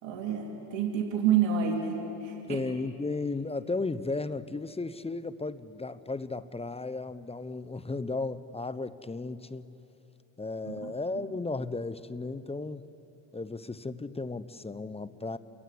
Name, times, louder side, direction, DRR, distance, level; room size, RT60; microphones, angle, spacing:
voice 1, 0.0-2.6 10.7-10.9, right 7 dB, 65° right, 2 dB, 2.6 m, -29 dB
voice 2, 2.5-9.8 10.4-12.9 13.3-15.4, left 3 dB, 10° left, 14 dB, 0.8 m, -35 dB
28.0 x 15.5 x 9.9 m, 2.9 s
supercardioid pair, 85°, 49 cm